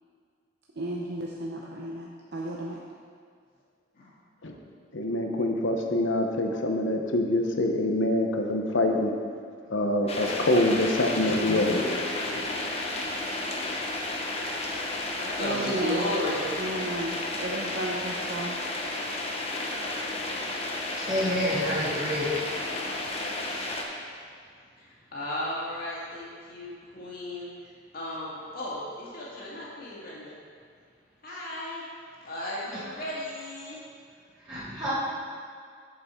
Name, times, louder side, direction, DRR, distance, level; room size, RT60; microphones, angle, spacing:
voice 1, 0.8-2.8 15.4-16.2 16.6-18.6, right 1 dB, 60° right, -3 dB, 0.7 m, -33 dB
voice 2, 4.9-9.1 9.7-12.5, left 1 dB, 75° left, 3 dB, 0.9 m, -25 dB
sound 1, 10.1-23.8, left 2 dB, 30° left, 0.9 m, -32 dB
voice 3, 15.2-16.4 24.8-27.5 27.9-30.4 31.2-31.8 32.2-33.8, left 1 dB, 50° left, -7 dB, 2.3 m, -34 dB
voice 4, 21.1-22.3 34.5-34.9, equal, 20° right, -13 dB, 1.8 m, -28 dB
8.0 x 7.6 x 4.5 m, 2.1 s
head